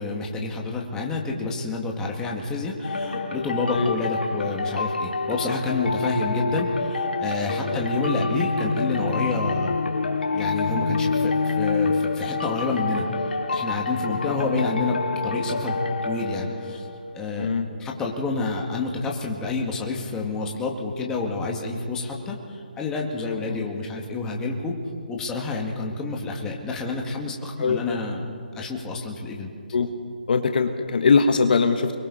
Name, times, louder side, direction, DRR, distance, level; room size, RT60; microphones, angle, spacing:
voice 1, 0.0-9.8 10.3-16.9 17.1-17.5 17.8-24.7 25.1-29.5, left 3 dB, 10° left, 0 dB, 2.2 m, -29 dB
sound 1, 2.8-17.3, left 3 dB, 75° left, 2.0 m, -27 dB
voice 2, 30.3-32.0, left 5 dB, 60° left, 6 dB, 1.6 m, -22 dB
29.5 x 22.0 x 4.3 m, 2.3 s
figure-of-eight pair, 150°, 5 cm